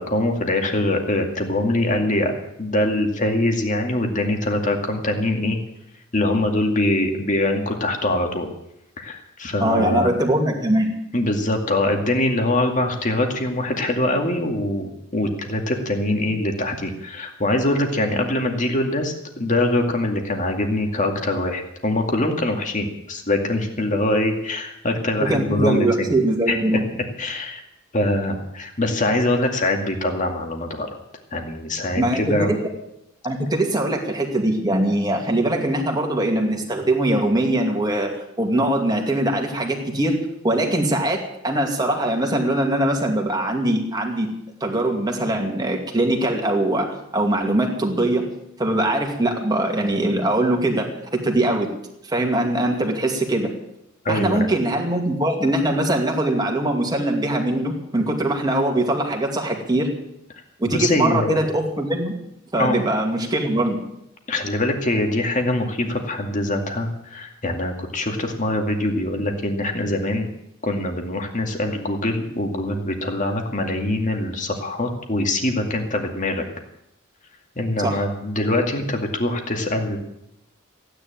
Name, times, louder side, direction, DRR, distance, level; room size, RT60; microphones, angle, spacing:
voice 1, 0.0-2.3 2.6-5.6 6.1-8.5 9.0-10.1 11.1-26.1 26.5-27.6 27.9-30.9 31.3-32.5 54.0-54.5 60.7-61.4 62.6-62.8 64.3-70.3 70.6-76.5 77.6-80.0, left 1 dB, 35° left, 3 dB, 2.2 m, -23 dB
voice 2, 9.6-10.9 25.2-26.8 32.0-32.6 33.2-44.3 44.6-48.3 48.6-51.7 52.0-53.5 54.1-59.9 60.6-62.1 62.5-63.8 77.8-78.0, right 1 dB, 20° right, 1 dB, 2.4 m, -22 dB
15.5 x 10.0 x 8.8 m, 0.83 s
head